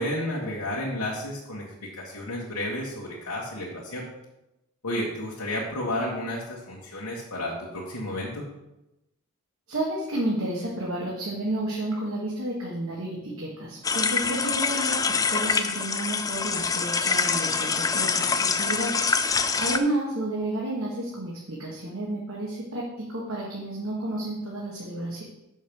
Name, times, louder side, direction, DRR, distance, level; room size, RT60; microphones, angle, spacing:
voice 1, 0.0-4.0 4.8-8.4, left 1 dB, 85° left, -5 dB, 1.7 m, -32 dB
voice 2, 9.7-18.9 19.5-25.2, right 1 dB, 65° right, -4 dB, 1.5 m, -31 dB
sound 1, 13.8-19.8, left 5 dB, 15° left, 0.3 m, -25 dB
6.3 x 6.1 x 5.3 m, 0.93 s
head